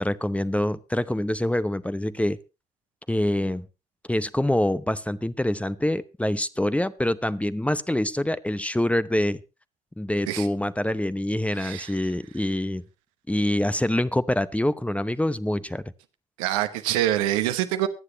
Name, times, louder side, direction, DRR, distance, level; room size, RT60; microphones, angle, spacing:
voice 1, 0.0-2.4 3.1-3.7 4.1-9.4 10.0-12.8 13.3-15.8, left 1 dB, 5° left, 15 dB, 0.8 m, -25 dB
voice 2, 11.5-11.9 16.4-17.9, right 13 dB, 75° right, 9 dB, 1.0 m, -25 dB
24.0 x 9.6 x 2.9 m, 0.29 s
figure-of-eight pair, 40°, 18 cm